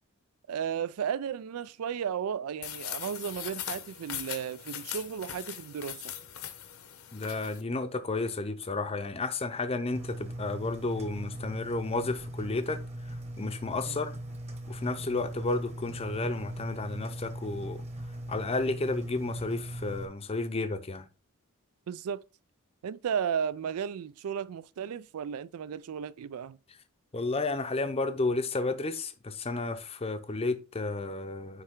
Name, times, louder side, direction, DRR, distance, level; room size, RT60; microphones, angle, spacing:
voice 1, 0.5-6.1 13.9-14.0 21.9-22.2 22.8-26.6, right 8 dB, 75° right, 0.3 m, -34 dB
sound 1, 2.6-7.6, left 10 dB, 70° left, 0.9 m, -40 dB
voice 2, 7.1-12.8 13.1-14.2 14.7-17.8 18.3-21.1 27.1-31.6, left 3 dB, 25° left, 0.6 m, -32 dB
Engine, 9.9-20.1, right 1 dB, 30° right, 1.2 m, -39 dB
9.7 x 3.3 x 3.6 m
head